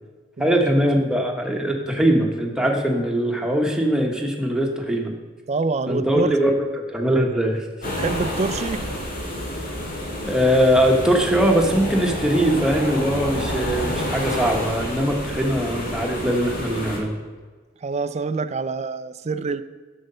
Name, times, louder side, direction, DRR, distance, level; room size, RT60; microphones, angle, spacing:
voice 1, 0.4-5.1 5.9-6.5 6.9-7.6 10.2-17.1, equal, 5° right, 1 dB, 1.0 m, -21 dB
voice 2, 5.5-6.3 7.8-8.8 17.8-19.6, right 3 dB, 35° right, 13 dB, 0.4 m, -26 dB
sound 1, 7.8-17.0, equal, 50° left, 2.0 m, -29 dB
7.9 x 6.5 x 5.5 m, 1.5 s
head